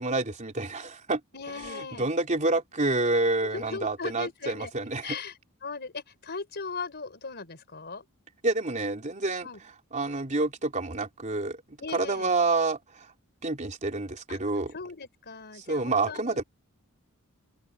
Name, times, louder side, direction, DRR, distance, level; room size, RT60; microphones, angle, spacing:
voice 1, 0.0-1.2 1.6-5.2 8.4-9.5 9.9-11.6 11.9-12.8 13.4-14.7 15.6-16.4, right 2 dB, 35° right, 3.5 m, -28 dB
voice 2, 1.3-2.1 3.4-4.7 5.0-8.0 9.4-9.6 11.8-12.3 14.3-14.4 14.7-16.4, left 4 dB, 50° left, 4.2 m, -38 dB
head